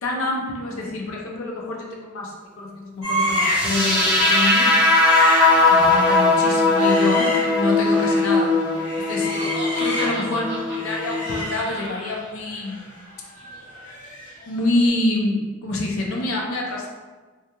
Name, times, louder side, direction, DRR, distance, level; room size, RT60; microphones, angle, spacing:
voice 1, 0.0-4.7 5.7-8.5 9.1-12.9 14.5-16.9, left 2 dB, 65° left, -1 dB, 0.5 m, -26 dB
sound 1, 3.0-3.8 4.1-4.3 4.7-8.4 8.7-10.4 10.7-14.5 14.7-14.9, equal, 90° left, 1.0 m, -30 dB
sound 2, 3.4-11.4, left 2 dB, 5° right, 0.4 m, -19 dB
Laughter, 9.1-12.2, right 1 dB, 50° right, 0.6 m, -36 dB
2.3 x 2.3 x 2.9 m, 1.3 s
head